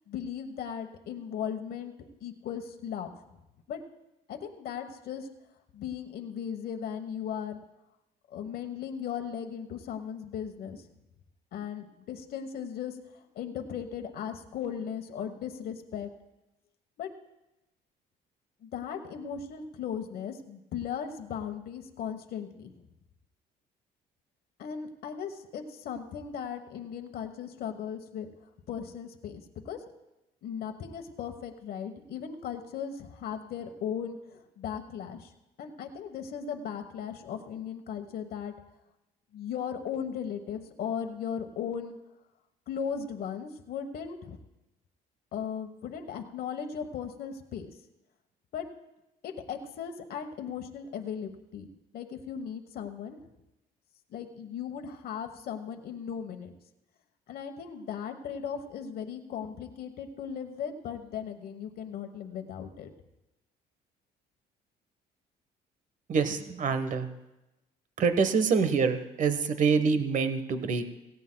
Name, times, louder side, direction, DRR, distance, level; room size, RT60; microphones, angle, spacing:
voice 1, 0.1-1.9 2.2-3.2 3.7-3.8 4.3-5.3 5.7-7.6 8.3-10.8 11.5-16.1 17.0-17.1 18.6-22.7 24.6-28.3 28.7-29.8 30.4-35.3 35.6-38.5 39.3-42.0 42.7-44.4 45.3-47.7 48.5-48.7 49.2-51.7 51.9-53.2 54.1-56.5 57.3-62.9, left 8 dB, 65° left, 6 dB, 1.2 m, -37 dB
voice 2, 66.1-67.1 68.0-70.9, right 5 dB, 50° right, 10 dB, 1.2 m, -26 dB
17.5 x 16.5 x 2.3 m, 0.94 s
cardioid pair, 110°, 17 cm